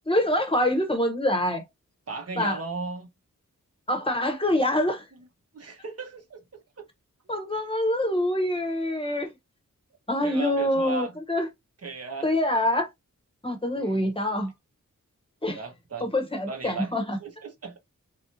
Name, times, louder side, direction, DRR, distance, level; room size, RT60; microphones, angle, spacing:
voice 1, 0.1-1.6 2.4-2.6 3.9-5.0 7.3-9.3 10.1-11.5 12.2-12.9 13.4-14.5 15.4-15.6 16.0-17.2, left 1 dB, 15° left, 0.9 m, -25 dB
voice 2, 2.1-3.1 5.1-5.3 5.5-6.9 10.2-11.2 11.8-12.3 13.7-14.1 15.5-16.1 16.5-17.8, right 4 dB, 50° right, 1.0 m, -37 dB
3.2 x 2.7 x 2.6 m
wide cardioid pair, 80°, 32 cm